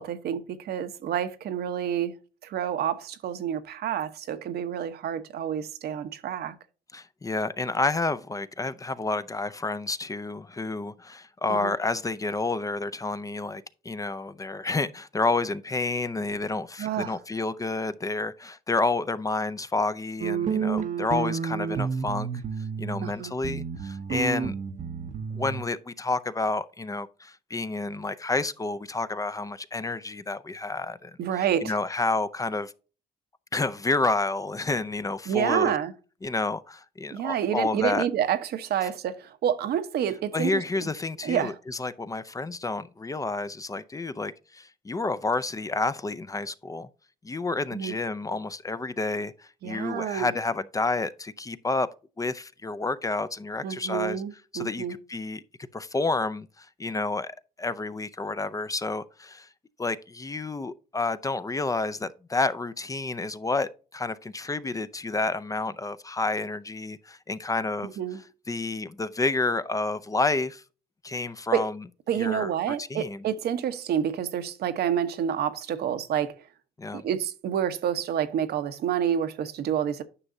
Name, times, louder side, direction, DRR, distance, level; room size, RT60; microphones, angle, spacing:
voice 1, 0.0-2.1 2.4-6.5 11.5-11.7 16.8-17.2 23.0-23.3 31.2-31.8 35.3-35.9 37.1-40.9 41.2-41.6 47.7-48.0 49.6-50.3 53.6-55.0 68.0-68.2 71.5-71.7 72.1-76.3 76.9-80.0, right 9 dB, 75° right, 1.0 m, -28 dB
voice 2, 6.9-22.3 22.8-24.5 25.3-31.1 31.4-32.7 33.5-35.7 36.2-38.1 40.3-46.9 47.2-51.9 52.2-54.2 54.5-55.4 55.7-59.5 59.8-67.9 68.5-70.6 71.0-71.8 72.2-73.2 76.8-77.0, left 3 dB, 20° left, 0.6 m, -30 dB
sound 1, 20.2-23.1 23.4-25.6, right 6 dB, 50° right, 0.8 m, -30 dB
9.8 x 6.0 x 2.7 m
cardioid pair, 95°, 17 cm